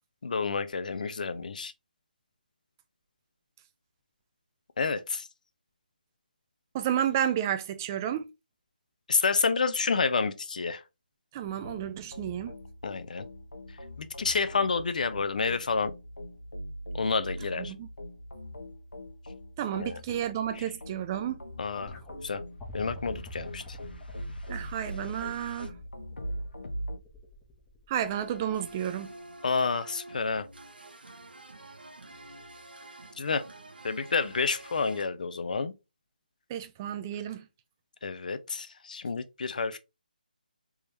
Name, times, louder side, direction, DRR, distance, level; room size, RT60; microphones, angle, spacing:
voice 1, 0.2-1.7 4.8-5.3 9.1-10.8 12.8-13.3 14.0-15.9 16.9-17.7 19.7-20.0 20.6-20.7 21.6-22.0 22.2-22.4 22.7-23.8 29.4-30.5 33.2-33.4 33.8-35.7 38.0-39.8, left 4 dB, 55° left, 0.5 m, -29 dB
voice 2, 6.7-8.3 11.3-12.6 17.6-17.9 19.6-21.4 24.5-25.7 27.9-29.1 36.5-37.4, right 10 dB, 20° right, 0.4 m, -31 dB
sound 1, 11.4-27.0, equal, 90° left, 0.9 m, -42 dB
sound 2, 21.9-29.0 30.2-30.3, left 2 dB, 5° left, 0.7 m, -49 dB
sound 3, 28.1-35.1, right 2 dB, 80° right, 0.9 m, -48 dB
3.5 x 3.1 x 2.6 m
figure-of-eight pair, 160°, 5 cm